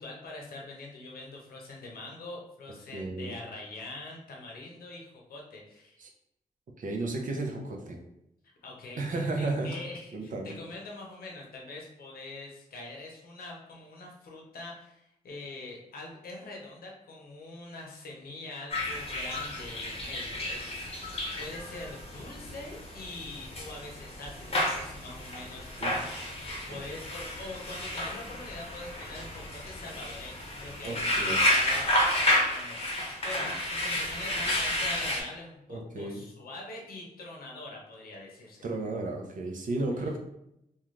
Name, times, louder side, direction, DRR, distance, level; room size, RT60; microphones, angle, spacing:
voice 1, 0.0-6.0 8.6-26.0 26.7-38.6, left 2 dB, 80° left, -1 dB, 0.7 m, -44 dB
voice 2, 2.9-3.3 6.0-6.1 6.8-8.0 8.9-9.7 10.1-10.5 25.8-25.9 26.7-26.8 30.8-31.4 35.7-36.2 38.6-40.2, right 2 dB, 60° right, 1 dB, 0.6 m, -33 dB
sound 1, 18.7-35.2, left 1 dB, 40° left, 0.7 m, -31 dB
2.4 x 2.3 x 3.1 m, 0.82 s
cardioid pair, 75°, 15 cm